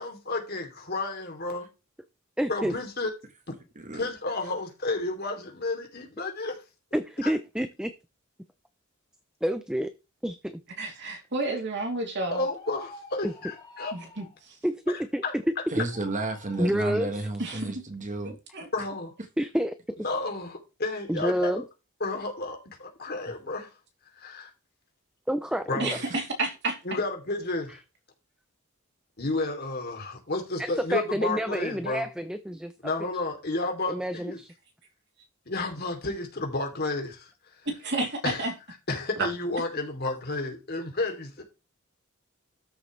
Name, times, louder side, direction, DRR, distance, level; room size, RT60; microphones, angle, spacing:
voice 1, 0.0-1.6 2.5-3.1 3.9-6.6 7.2-7.3 12.3-13.9 14.9-15.3 18.7-19.1 20.0-21.6 22.0-23.7 24.2-24.5 25.7-26.0 26.8-27.8 29.2-32.1 32.8-34.4 35.5-37.3 38.2-38.4 38.9-41.4, left 2 dB, 50° left, 2.9 m, -31 dB
voice 2, 2.4-2.8 6.9-7.9 9.4-9.9 10.2-10.6 13.2-13.3 14.6-15.2 16.6-17.1 19.4-20.0 21.1-21.6 25.3-25.9 30.6-32.7 33.9-34.5, equal, 5° right, 0.5 m, -28 dB
voice 3, 3.7-4.1 15.7-18.4 25.9-26.2, right 2 dB, 35° right, 1.3 m, -32 dB
voice 4, 10.8-12.4 13.9-14.6 17.4-17.6 18.5-18.7 25.8-26.8 37.6-38.5 39.2-39.3, right 2 dB, 55° right, 3.1 m, -30 dB
sound 1, 12.5-14.4 15.7-16.7, left 2 dB, 20° left, 2.2 m, -48 dB
13.0 x 7.1 x 3.2 m
head